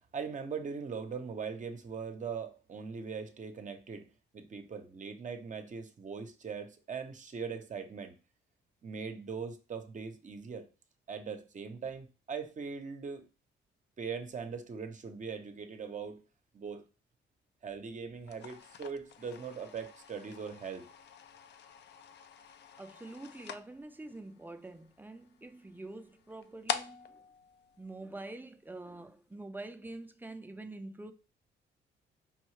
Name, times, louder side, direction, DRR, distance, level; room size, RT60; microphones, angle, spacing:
voice 1, 0.1-4.1 4.3-8.1 8.8-10.7 11.1-13.3 14.0-16.2 16.5-16.8 17.6-20.8, right 5 dB, 40° right, 0.8 m, -40 dB
sound 1, 18.2-28.6, left 8 dB, 60° left, 0.5 m, -45 dB
voice 2, 22.8-27.2 27.8-31.1, right 2 dB, 10° right, 0.5 m, -46 dB
5.3 x 2.7 x 3.1 m
cardioid pair, 90°, 20 cm